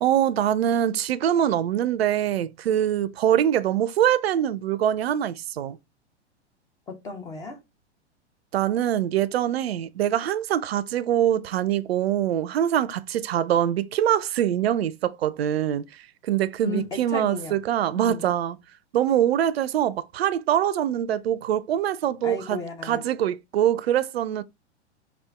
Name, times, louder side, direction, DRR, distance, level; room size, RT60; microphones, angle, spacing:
voice 1, 0.0-5.8 8.5-15.8 16.2-18.6 18.9-24.4, right 10 dB, 60° right, 0.4 m, -24 dB
voice 2, 6.9-7.6 16.6-17.6 17.9-18.2 22.2-23.1, left 3 dB, 10° left, 0.4 m, -34 dB
4.7 x 2.4 x 2.2 m
figure-of-eight pair, 100°, 35 cm